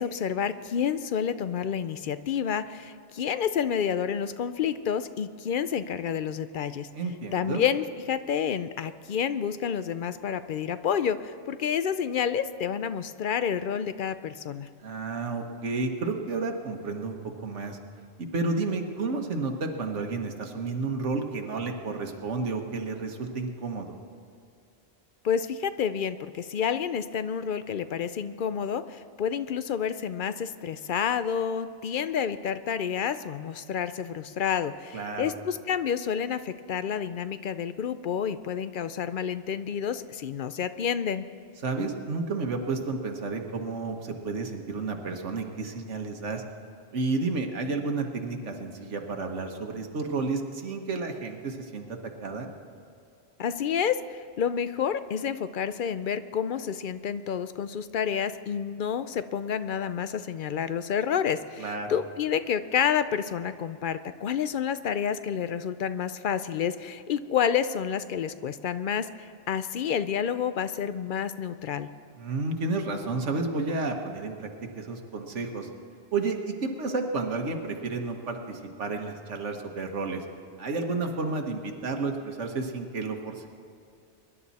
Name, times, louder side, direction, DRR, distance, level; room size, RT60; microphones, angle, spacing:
voice 1, 0.0-6.9 7.3-14.7 25.2-41.2 53.4-71.9, left 8 dB, 55° left, 12 dB, 0.6 m, -29 dB
voice 2, 6.9-7.6 14.8-17.2 17.4-17.8 18.3-23.9 34.9-35.2 41.6-46.4 46.9-52.5 61.6-61.9 72.2-74.5 74.8-75.7 76.1-80.2 80.6-83.5, right 3 dB, 85° right, 3 dB, 1.6 m, -31 dB
23.0 x 11.0 x 4.2 m, 2.5 s
omnidirectional pair, 1.2 m